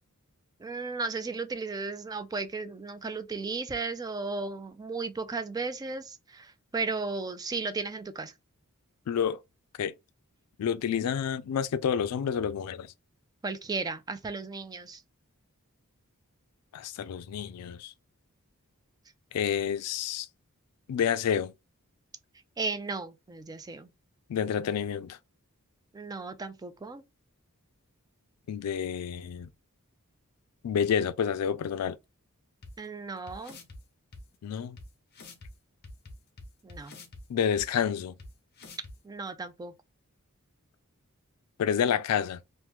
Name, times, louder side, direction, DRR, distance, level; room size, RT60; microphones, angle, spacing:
voice 1, 0.6-8.3 13.4-15.0 22.6-23.9 25.9-27.0 32.8-33.6 36.6-37.0 39.0-39.7, right 4 dB, 15° right, 0.3 m, -35 dB
voice 2, 9.1-9.4 9.8-9.9 10.6-12.9 16.7-17.9 19.3-20.3 20.9-21.5 24.3-25.2 28.5-29.5 30.6-32.0 34.4-34.8 37.3-38.1 41.6-42.4, left 8 dB, 80° left, 0.3 m, -29 dB
sound 1, 32.6-32.7 33.3-33.8 34.1-34.2 34.8-34.9 35.1-35.5 35.8-37.2 37.6-37.7 38.2-38.3 38.6-38.9, left 2 dB, 45° left, 0.8 m, -46 dB
3.0 x 2.1 x 3.3 m
head